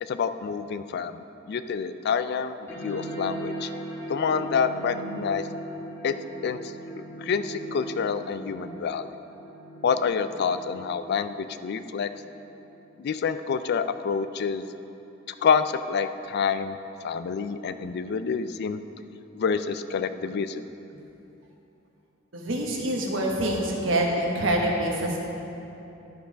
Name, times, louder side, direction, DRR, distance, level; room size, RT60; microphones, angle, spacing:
voice 1, 0.0-3.7 4.1-5.5 6.0-6.1 6.4-9.1 9.8-12.1 13.0-14.7 15.4-16.8 17.0-18.8 19.3-20.7, left 6 dB, 55° left, 11 dB, 0.3 m, -27 dB
sound 1, 2.7-13.7, right 2 dB, 10° left, 1.3 m, -39 dB
voice 2, 22.3-25.2, right 1 dB, 70° right, -1 dB, 1.2 m, -26 dB
12.0 x 4.6 x 5.0 m, 2.9 s
head